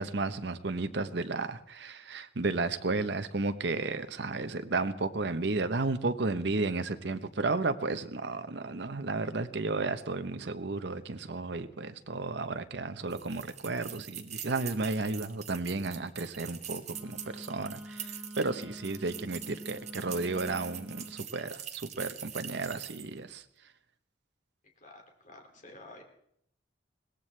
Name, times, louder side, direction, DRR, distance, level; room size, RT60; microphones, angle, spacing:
voice 1, 0.0-23.4, right 3 dB, 65° right, 10 dB, 0.9 m, -33 dB
sound 1, 13.1-23.2, right 10 dB, 40° right, 1.1 m, -44 dB
Wind instrument woodwind instrument, 16.9-21.3, equal, ahead, 1.0 m, -46 dB
voice 2, 24.8-26.0, left 2 dB, 45° left, 3 dB, 2.4 m, -51 dB
21.5 x 17.5 x 3.3 m, 0.71 s
head